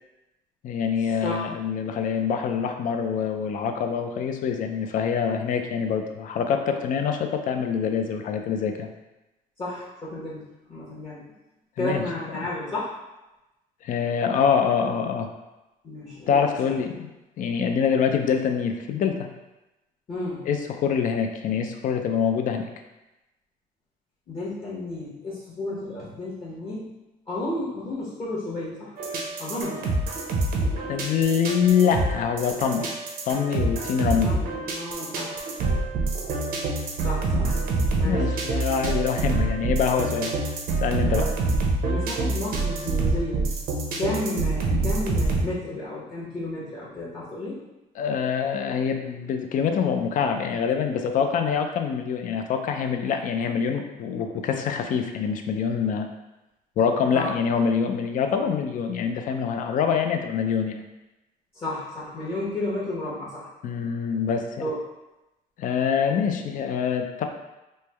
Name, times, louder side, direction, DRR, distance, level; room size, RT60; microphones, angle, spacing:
voice 1, 0.6-8.9 11.8-12.0 12.3-12.5 13.8-15.3 16.3-17.1 17.4-19.3 20.4-22.7 30.9-33.0 33.3-34.3 38.0-40.3 40.8-41.3 48.0-56.1 56.8-60.8 63.6-64.7 65.6-67.2, left 7 dB, 50° left, 5 dB, 0.4 m, -25 dB
voice 2, 9.6-10.4 10.7-11.2 11.8-12.9 15.8-16.7 20.1-20.5 24.3-26.9 27.3-28.9 29.4-29.9 34.2-35.5 37.0-37.6 38.0-38.3 41.1-43.5 44.0-47.6 57.1-57.3 61.5-63.8 64.6-64.8, left 1 dB, 35° left, -9 dB, 0.9 m, -32 dB
sound 1, 29.0-45.4, right 3 dB, 60° right, 0.7 m, -26 dB
3.2 x 2.1 x 3.3 m, 1.0 s
cardioid pair, 110°, 17 cm